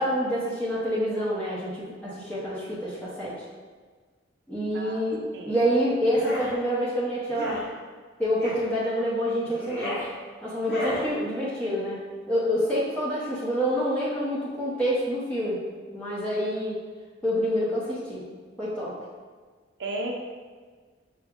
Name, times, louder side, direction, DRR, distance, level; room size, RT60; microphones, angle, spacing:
voice 1, 0.0-3.4 4.5-7.6 8.2-10.0 10.4-15.6 15.9-16.8 17.2-18.3 18.6-18.9, equal, 5° left, -9 dB, 0.7 m, -27 dB
voice 2, 4.7-5.1 5.3-5.6 19.8-20.1, right 2 dB, 60° right, 1 dB, 0.5 m, -33 dB
sound 1, 6.1-6.5 7.3-7.6 8.4-8.7 9.5-10.1 10.6-11.1, left 1 dB, 50° left, 1.0 m, -33 dB
5.7 x 2.1 x 3.5 m, 1.5 s
head